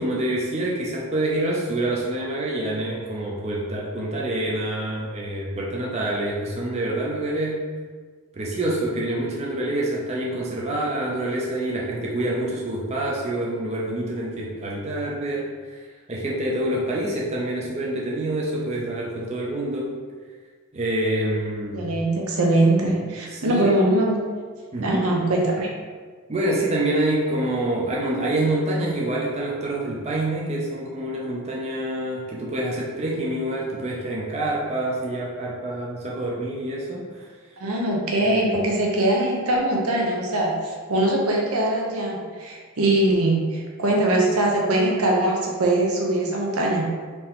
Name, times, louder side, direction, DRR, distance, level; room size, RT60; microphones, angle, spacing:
voice 1, 0.0-7.6 8.3-20.0 20.7-21.8 23.3-23.6 24.7-25.1 26.3-37.2, right 1 dB, 30° right, -4 dB, 0.5 m, -26 dB
voice 2, 21.7-24.2 24.8-25.7 37.6-46.9, right 1 dB, 80° right, -1 dB, 0.8 m, -22 dB
4.1 x 2.8 x 3.6 m, 1.5 s
head